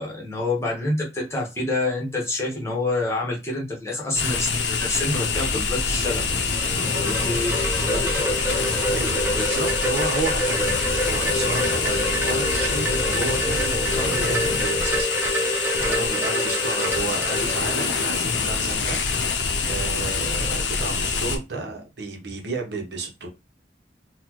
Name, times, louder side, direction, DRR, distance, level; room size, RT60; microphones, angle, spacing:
voice 1, 0.0-6.2 7.0-8.3, left 2 dB, 15° left, 0.9 m, -27 dB
sound 1, 4.1-21.4, left 5 dB, 80° left, 0.6 m, -25 dB
Wind chime, 6.3-18.3, equal, 10° right, 0.8 m, -27 dB
voice 2, 8.9-15.1 15.7-19.3 19.7-23.3, right 3 dB, 65° right, 0.8 m, -32 dB
4.1 x 2.2 x 2.9 m
head